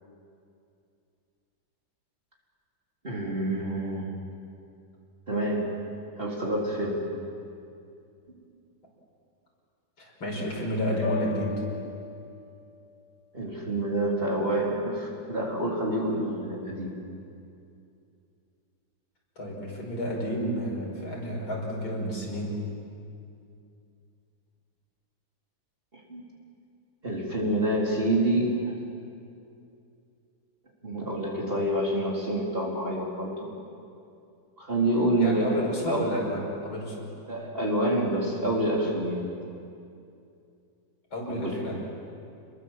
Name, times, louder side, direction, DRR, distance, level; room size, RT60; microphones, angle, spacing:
voice 1, 3.0-4.1 5.3-5.8 6.2-7.1 13.3-16.9 25.9-26.2 27.0-28.8 30.8-33.5 34.6-36.1 37.3-39.2 41.3-41.6, right 1 dB, 25° right, -3 dB, 4.1 m, -27 dB
voice 2, 10.0-11.6 19.4-22.6 35.2-37.1 41.1-41.8, equal, 85° left, -2 dB, 6.4 m, -31 dB
sound 1, 11.0-12.9, left 6 dB, 50° left, 2.1 m, -37 dB
29.0 x 21.5 x 7.6 m, 2.5 s
omnidirectional pair, 2.2 m